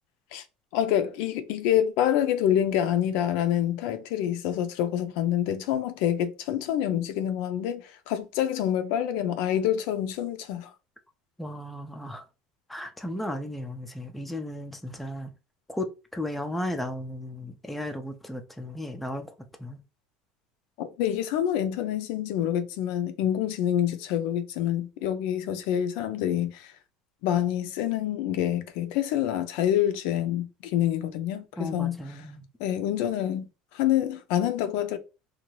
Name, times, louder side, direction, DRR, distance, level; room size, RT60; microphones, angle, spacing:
voice 1, 0.7-10.7 20.8-26.7 27.2-32.0 32.6-33.5 33.7-35.0, left 11 dB, 70° left, 0.4 m, -27 dB
voice 2, 11.4-12.2 12.7-15.3 15.7-19.3 19.6-19.8 31.6-32.4, left 1 dB, 5° left, 0.4 m, -35 dB
2.7 x 2.3 x 3.0 m
cardioid pair, 145°, 3 cm